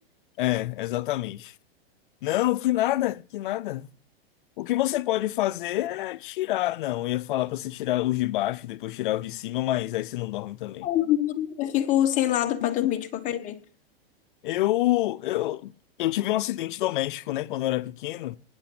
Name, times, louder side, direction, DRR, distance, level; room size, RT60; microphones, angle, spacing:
voice 1, 0.4-1.5 2.2-3.9 4.6-10.9 12.6-12.7 14.4-15.7 16.0-18.4, left 15 dB, 55° left, 0.6 m, -27 dB
voice 2, 10.8-13.6, left 12 dB, 25° left, 1.2 m, -25 dB
19.0 x 6.6 x 6.1 m
hypercardioid pair, 150°, 31 cm